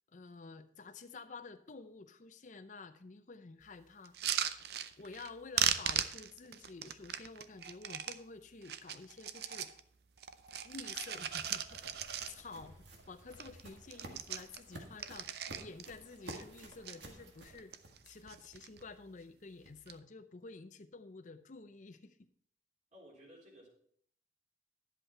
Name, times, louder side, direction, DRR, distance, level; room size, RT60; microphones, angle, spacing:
voice 1, 0.1-9.7 10.6-17.7 18.0-22.3, left 3 dB, 45° left, 10 dB, 0.6 m, -51 dB
sound 1, 4.0-5.3 5.5-8.2 8.6-9.8 10.2-12.6 13.0-13.1 13.3-13.6 13.9-15.9 16.2-17.0 17.5-18.0 18.3-18.8 19.7-19.9, right 9 dB, 60° right, 0.6 m, -38 dB
sound 2, 9.9-18.4, right 1 dB, 85° right, 1.8 m, -53 dB
voice 2, 22.9-23.7, equal, 45° right, -3 dB, 3.7 m, -56 dB
11.0 x 7.9 x 4.4 m, 0.62 s
head